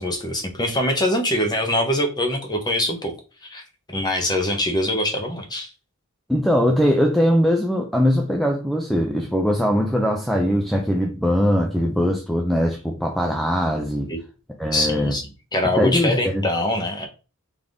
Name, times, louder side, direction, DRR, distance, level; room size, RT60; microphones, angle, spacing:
voice 1, 0.0-3.1 3.4-3.6 3.9-5.7 14.1-14.2 14.7-15.3 15.5-17.1, left 1 dB, 20° left, 0.8 m, -23 dB
voice 2, 6.3-14.1 14.6-15.1 15.7-16.5, equal, ahead, 0.4 m, -21 dB
3.8 x 3.5 x 3.4 m
head